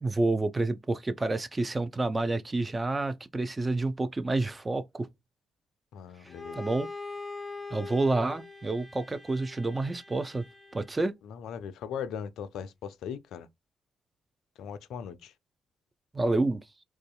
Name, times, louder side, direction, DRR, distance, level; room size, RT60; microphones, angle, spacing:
voice 1, 0.0-5.1 6.5-6.9 7.7-10.5 10.7-11.1 16.1-16.6, right 2 dB, 25° right, 0.5 m, -29 dB
voice 2, 5.9-6.6 11.2-13.5 14.6-15.3, left 8 dB, 65° left, 0.3 m, -39 dB
Bowed string instrument, 6.2-11.1, left 3 dB, 20° left, 0.6 m, -42 dB
2.5 x 2.3 x 2.3 m
hypercardioid pair, 40°, 0 cm